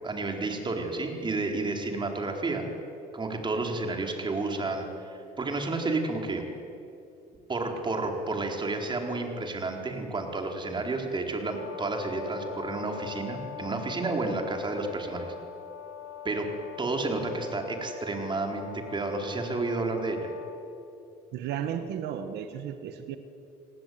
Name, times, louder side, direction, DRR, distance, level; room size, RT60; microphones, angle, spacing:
voice 1, 0.0-2.6 3.1-6.4 7.5-15.3 16.2-16.5 16.8-20.3, right 3 dB, 25° right, 3 dB, 4.6 m, -31 dB
Brass instrument, 11.5-20.6, left 9 dB, 50° left, 5.2 m, -43 dB
voice 2, 21.3-23.2, right 9 dB, 80° right, 9 dB, 1.7 m, -34 dB
30.0 x 19.5 x 9.7 m, 2.8 s
cardioid pair, 110°, 17 cm